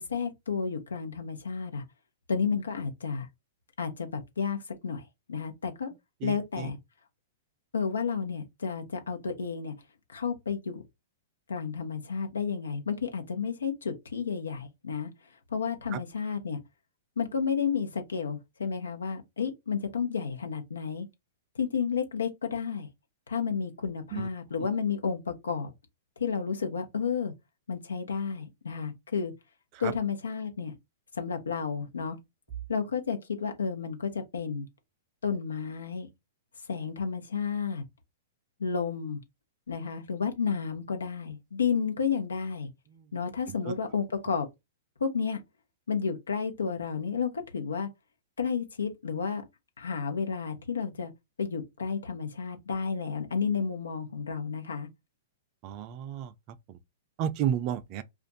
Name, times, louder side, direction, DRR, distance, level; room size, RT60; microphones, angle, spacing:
voice 1, 0.0-1.8 2.3-3.3 3.8-5.0 5.3-5.9 6.2-6.8 7.7-9.7 10.1-10.8 11.5-15.1 15.5-16.6 17.2-21.0 21.5-22.9 23.3-25.7 26.2-27.3 27.7-29.3 29.8-30.7 31.2-32.2 32.7-34.7 35.2-36.1 36.7-37.8 38.6-39.2 39.7-42.7 43.1-44.5 45.0-45.4 45.9-47.9 48.4-49.4 49.8-51.1 51.4-54.9, left 6 dB, 80° left, 1.0 m, -31 dB
voice 2, 6.2-6.7 15.9-16.0 24.1-24.3 29.8-29.9 42.9-43.1 55.6-56.3 56.7-56.8 57.2-58.0, right 9 dB, 40° right, 0.5 m, -32 dB
2.5 x 2.4 x 3.9 m
hypercardioid pair, 115°, 0 cm